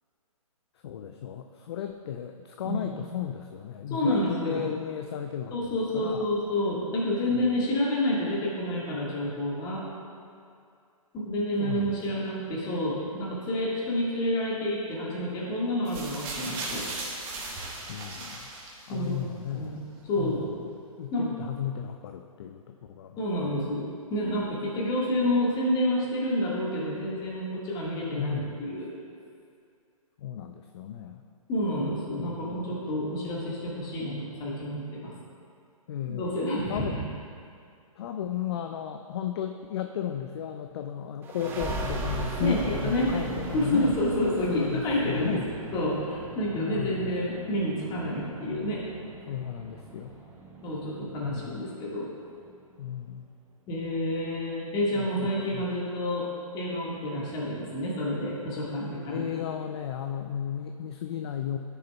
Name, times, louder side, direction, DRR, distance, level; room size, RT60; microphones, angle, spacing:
voice 1, 0.8-6.3 7.3-7.5 11.6-12.2 17.9-18.5 18.9-19.8 20.2-20.5 21.0-23.2 28.1-28.7 30.2-31.2 32.2-32.7 35.9-36.4 36.7-37.0 38.0-43.9 44.5-45.5 46.5-47.1 49.3-50.2 51.2-51.6 52.8-53.3 54.9-55.7 59.1-61.6, left 9 dB, 45° left, 6 dB, 0.4 m, -34 dB
voice 2, 3.9-4.7 5.5-9.8 11.1-16.8 18.9-19.2 19.5-19.8 20.0-20.5 21.1-21.3 23.2-28.9 31.5-35.1 36.1-37.1 42.4-43.1 43.5-45.4 45.7-48.9 50.6-52.1 53.7-56.3 56.5-59.4, left 1 dB, 20° left, -5 dB, 1.7 m, -29 dB
sound 1, 15.9-19.1 20.0-20.1, right 2 dB, 25° right, 1.3 m, -37 dB
sound 2, 41.2-52.5, right 2 dB, 10° right, 0.5 m, -38 dB
11.0 x 6.8 x 2.3 m, 2.4 s
hypercardioid pair, 140°, 18 cm